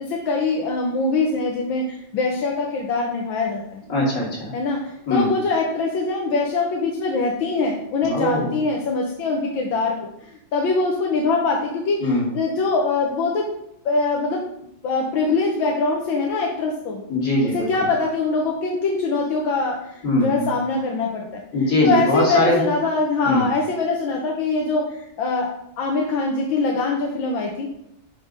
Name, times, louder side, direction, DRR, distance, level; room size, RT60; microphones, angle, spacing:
voice 1, 0.0-3.8 4.5-10.0 10.3-13.5 13.9-14.5 14.8-17.0 17.5-21.4 21.8-27.7, left 3 dB, 85° left, 0 dB, 1.8 m, -23 dB
voice 2, 3.9-4.5 5.1-5.3 8.0-8.6 12.0-12.3 17.1-17.9 20.0-20.5 21.5-22.6 23.2-23.5, left 1 dB, 60° left, -5 dB, 3.4 m, -21 dB
10.0 x 3.6 x 5.4 m, 0.76 s
omnidirectional pair, 2.1 m